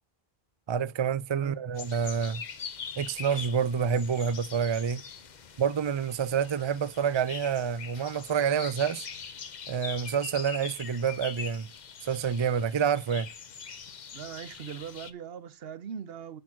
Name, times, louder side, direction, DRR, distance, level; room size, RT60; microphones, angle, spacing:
voice 1, 0.7-2.4 3.0-5.0 5.6-9.1 9.7-11.7 12.0-13.3, right 7 dB, 45° right, 0.3 m, -28 dB
voice 2, 1.3-1.6 14.1-16.4, right 8 dB, 70° right, 1.0 m, -40 dB
sound 1, 1.8-15.1, left 6 dB, 50° left, 0.8 m, -43 dB
6.4 x 5.9 x 6.0 m
omnidirectional pair, 1.0 m